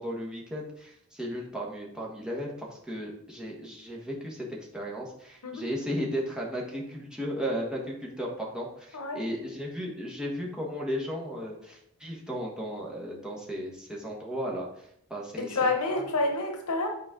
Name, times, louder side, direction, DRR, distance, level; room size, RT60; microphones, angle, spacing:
voice 1, 0.0-15.6 15.9-16.1, equal, 5° right, -3 dB, 1.3 m, -35 dB
voice 2, 15.4-16.9, left 2 dB, 85° left, 4 dB, 1.0 m, -28 dB
9.1 x 4.3 x 3.7 m, 0.73 s
head